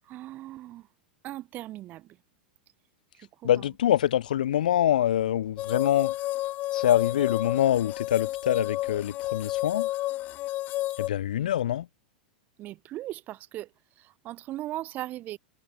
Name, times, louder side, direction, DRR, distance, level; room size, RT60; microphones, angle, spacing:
voice 1, 0.1-0.9 1.2-2.2 3.1-3.6 12.6-15.4, right 15 dB, 40° right, 2.3 m, -39 dB
voice 2, 3.4-6.1 6.7-9.9 11.0-11.9, left 11 dB, 70° left, 0.9 m, -25 dB
sound 1, 5.6-11.1, left 16 dB, 40° left, 0.9 m, -31 dB
hypercardioid pair, 95°, 5 cm